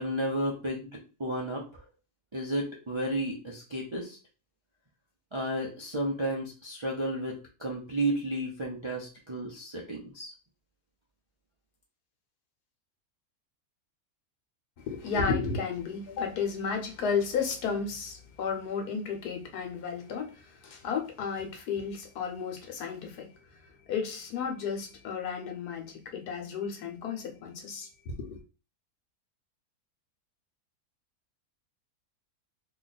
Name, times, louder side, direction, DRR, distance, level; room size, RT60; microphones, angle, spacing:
voice 1, 0.0-1.8 2.3-4.2 5.3-10.3, right 1 dB, 45° right, 0.3 m, -32 dB
voice 2, 14.8-23.3 23.9-28.4, left 5 dB, 85° left, 1.4 m, -33 dB
3.1 x 2.4 x 4.0 m
omnidirectional pair, 1.6 m